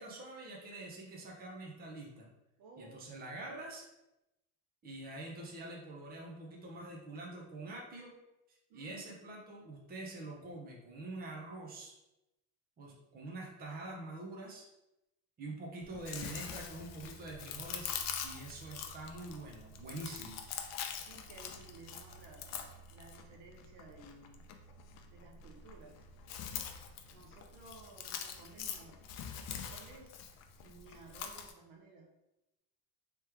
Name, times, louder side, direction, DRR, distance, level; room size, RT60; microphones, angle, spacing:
voice 1, 0.0-2.3 2.8-3.8 4.8-8.1 8.5-11.9 12.8-14.7 15.4-17.9 18.2-20.4, right 2 dB, 25° right, -2 dB, 0.8 m, -45 dB
voice 2, 2.6-3.2 8.7-9.2 20.1-20.2 20.7-20.8 21.1-24.4 25.1-26.0 27.1-29.0 29.5-30.1 30.6-32.1, right 3 dB, 70° right, 0 dB, 1.0 m, -56 dB
Chewing mastication, 15.8-31.5, left 7 dB, 50° left, 0.5 m, -44 dB
3.2 x 3.1 x 3.4 m, 0.91 s
cardioid pair, 155°, 35 cm